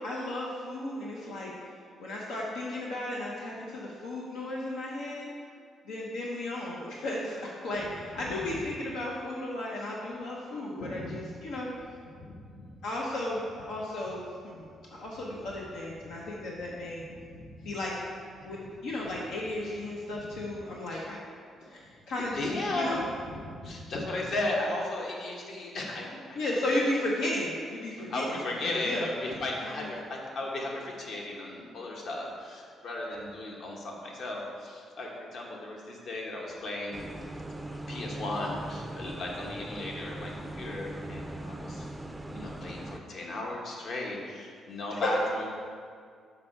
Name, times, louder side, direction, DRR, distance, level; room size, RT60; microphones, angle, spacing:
voice 1, 0.0-1.5 2.0-5.3 5.9-11.7 12.8-17.1 17.6-17.9 18.4-21.2 21.7-23.0 26.3-29.1 29.6-29.9 44.9-45.0, left 1 dB, 90° left, -4 dB, 0.9 m, -34 dB
voice 2, 8.3-8.6 10.8-11.1 12.2-12.6 17.1-17.7 18.4-18.5 20.3-20.4 20.9-21.1 22.3-26.8 28.0-37.1 37.9-41.9 42.3-45.5, left 2 dB, 60° left, -2 dB, 1.3 m, -35 dB
sound 1, 36.9-43.0, right 1 dB, 10° right, 0.4 m, -40 dB
6.0 x 5.5 x 4.5 m, 2.1 s
cardioid pair, 90°, 0 cm